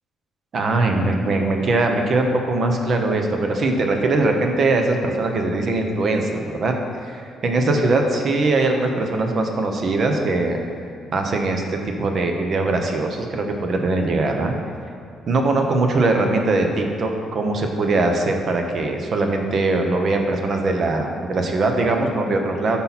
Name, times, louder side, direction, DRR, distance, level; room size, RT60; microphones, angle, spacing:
voice 1, 0.5-6.7 7.0-10.6 11.1-14.5 15.3-22.8, right 2 dB, 40° right, 3 dB, 0.9 m, -21 dB
10.0 x 5.7 x 4.2 m, 2.4 s
cardioid pair, 150°, 0 cm